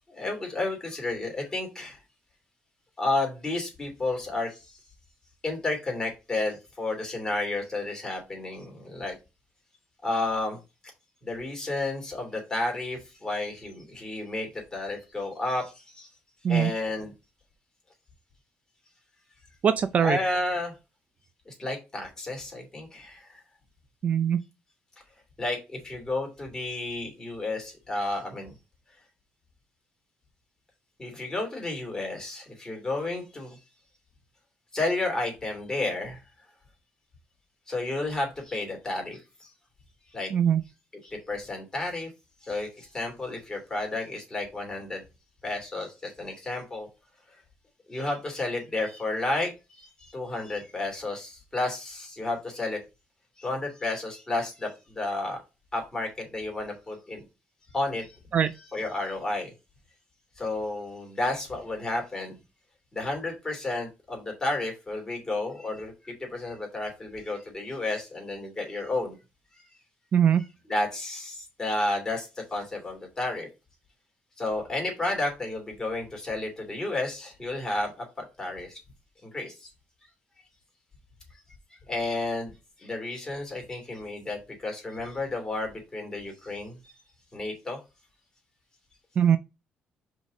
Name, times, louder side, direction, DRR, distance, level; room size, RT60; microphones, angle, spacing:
voice 1, 0.1-2.0 3.0-4.8 5.4-9.2 10.0-10.6 11.2-16.1 16.5-17.1 20.0-20.7 21.5-23.4 25.4-28.5 31.0-33.6 34.7-36.2 37.7-39.5 40.1-40.3 41.0-42.1 42.4-45.0 45.4-46.9 47.9-52.8 53.4-55.4 55.7-57.2 57.7-58.2 58.5-59.5 60.4-62.4 62.9-69.2 70.4-73.5 74.4-77.9 78.2-78.8 79.2-79.7 81.9-82.5 82.8-86.8 87.3-87.8, left 2 dB, 15° left, 2.8 m, -32 dB
voice 2, 19.6-20.2 24.0-24.4 40.3-40.6 58.3-58.5 70.1-70.4 89.2-89.4, right 8 dB, 40° right, 0.4 m, -21 dB
5.2 x 4.0 x 5.0 m
cardioid pair, 130°, 4 cm